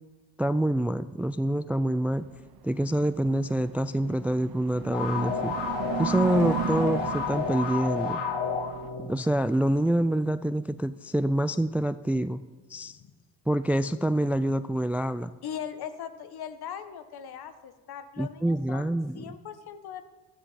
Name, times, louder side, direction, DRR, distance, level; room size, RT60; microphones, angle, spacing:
voice 1, 0.4-2.2 2.6-5.5 6.0-8.2 9.0-12.4 12.7-13.0 13.5-15.3 18.2-19.2, right 1 dB, 5° right, 14 dB, 0.4 m, -26 dB
sound 1, 2.1-8.9, right 10 dB, 55° right, 0.9 m, -36 dB
sound 2, 4.9-9.6, left 5 dB, 80° left, 1.8 m, -31 dB
voice 2, 15.4-18.9 19.1-20.1, left 8 dB, 60° left, 10 dB, 1.5 m, -40 dB
15.0 x 13.5 x 4.2 m, 1.3 s
supercardioid pair, 75°, 42 cm